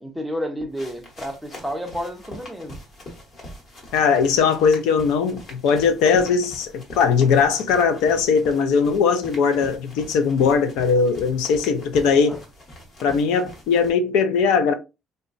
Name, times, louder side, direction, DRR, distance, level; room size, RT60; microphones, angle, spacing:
voice 1, 0.0-2.8 12.1-12.4, equal, ahead, 0.5 m, -31 dB
sound 1, 0.7-13.9, left 1 dB, 35° left, 1.0 m, -43 dB
voice 2, 3.9-12.4 13.0-14.7, left 5 dB, 85° left, 0.5 m, -19 dB
3.8 x 2.2 x 2.5 m
cardioid pair, 165°, 0 cm